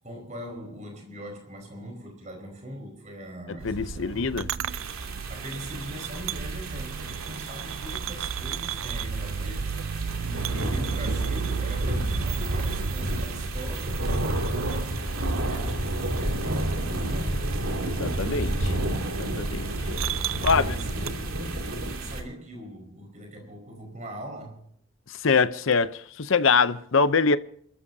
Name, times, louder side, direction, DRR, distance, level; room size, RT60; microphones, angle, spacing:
voice 1, 0.0-4.3 5.3-17.4 20.3-24.7, right 1 dB, 35° right, 4.6 m, -41 dB
voice 2, 3.6-4.5 17.8-18.7 19.2-19.7 20.4-20.7 25.2-27.4, left 5 dB, 70° left, 0.7 m, -23 dB
sound 1, 3.6-21.1, right 7 dB, 70° right, 0.5 m, -35 dB
sound 2, 4.7-22.2, right 1 dB, 85° right, 2.6 m, -30 dB
28.5 x 13.5 x 2.7 m
head